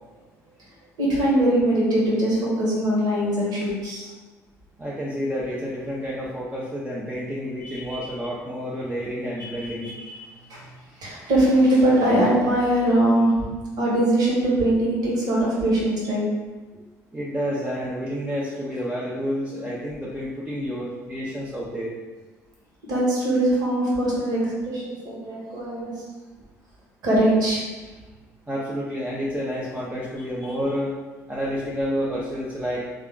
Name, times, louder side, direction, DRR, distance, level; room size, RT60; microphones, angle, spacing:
voice 1, 1.0-4.1 7.6-8.0 9.5-9.9 10.5-10.6 11.0-13.4 13.8-16.2 22.8-26.0 27.0-27.6, right 1 dB, 50° right, -5 dB, 1.5 m, -21 dB
voice 2, 4.8-9.9 17.1-21.9 28.5-30.9 31.3-32.9, equal, 10° right, -6 dB, 0.8 m, -29 dB
3.4 x 2.4 x 3.6 m, 1.2 s
figure-of-eight pair, 55°, 9 cm